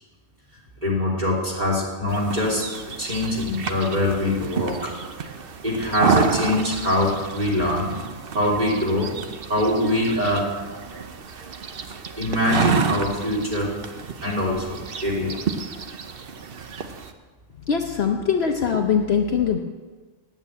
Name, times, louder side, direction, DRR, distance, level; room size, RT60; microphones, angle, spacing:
voice 1, 0.8-2.7 3.0-4.9 5.6-8.0 8.3-9.1 9.5-10.5 12.2-13.7 14.2-15.4, left 1 dB, 30° right, -4 dB, 3.2 m, -23 dB
sound 1, 2.1-17.1, right 6 dB, 50° right, 0.9 m, -30 dB
voice 2, 17.7-19.6, left 6 dB, 55° left, 3 dB, 1.0 m, -22 dB
9.3 x 8.9 x 8.2 m, 1.3 s
omnidirectional pair, 1.4 m